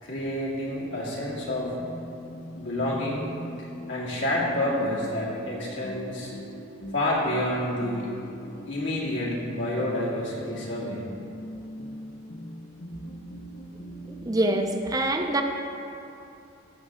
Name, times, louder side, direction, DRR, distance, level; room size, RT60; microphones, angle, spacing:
voice 1, 0.0-1.8 2.6-3.3 3.6-6.3 6.9-8.1 8.7-11.0, left 1 dB, 75° left, -6 dB, 2.4 m, -29 dB
sound 1, 0.8-14.7, equal, 55° left, 0.9 m, -41 dB
voice 2, 14.0-15.4, right 1 dB, 20° right, 3 dB, 0.7 m, -25 dB
15.0 x 6.7 x 3.8 m, 2.8 s
head